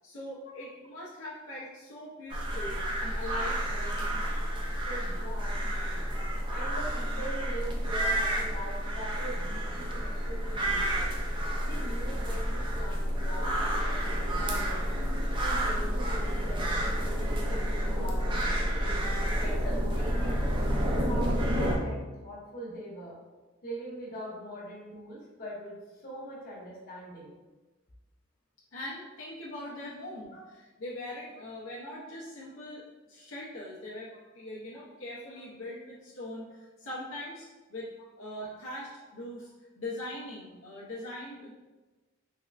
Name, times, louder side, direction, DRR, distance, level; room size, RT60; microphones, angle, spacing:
voice 1, 0.0-4.5 28.7-37.9 38.2-39.5 39.8-41.5, left 1 dB, 75° left, -6 dB, 0.7 m, -41 dB
sound 1, 2.3-21.8, equal, 25° right, 0.4 m, -30 dB
voice 2, 4.9-6.0 6.5-11.1 11.6-13.5 13.8-14.8 15.4-18.8 19.4-23.2 23.6-27.3 30.3-30.4 38.5-38.6, right 1 dB, 45° left, -5 dB, 1.0 m, -42 dB
3.5 x 3.2 x 2.4 m, 1.2 s
head